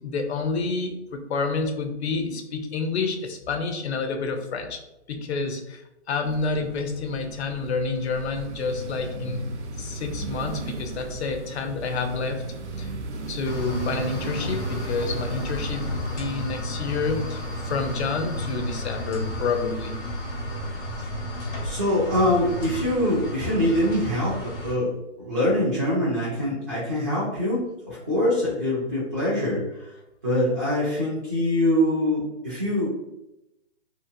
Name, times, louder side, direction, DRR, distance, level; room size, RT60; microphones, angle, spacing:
voice 1, 0.0-4.8 5.1-5.8 6.1-9.5 9.8-12.4 12.8-12.9 13.3-20.0, left 4 dB, 65° left, 5 dB, 0.6 m, -29 dB
sound 1, 6.2-23.1, right 2 dB, 80° right, 0.5 m, -37 dB
sound 2, 13.4-24.7, left 1 dB, 85° left, 1.3 m, -33 dB
voice 2, 21.6-24.9 25.2-27.6 27.9-29.9 30.2-32.9, left 1 dB, 20° right, -10 dB, 0.3 m, -24 dB
2.8 x 2.0 x 2.6 m, 0.90 s
hypercardioid pair, 145°, 35 cm